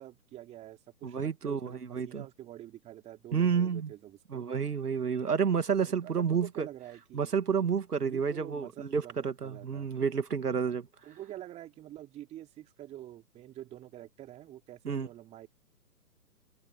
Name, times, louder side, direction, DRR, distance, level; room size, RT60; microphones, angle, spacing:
voice 1, 0.0-4.5 5.8-7.3 8.0-9.9 10.7-10.8 11.0-15.5, right 13 dB, 15° right, 2.9 m, -47 dB
voice 2, 1.0-2.2 3.3-3.9 4.3-6.7 7.1-10.9 14.9-15.1, right 6 dB, 65° right, 2.3 m, -30 dB
figure-of-eight pair, 135°, 49 cm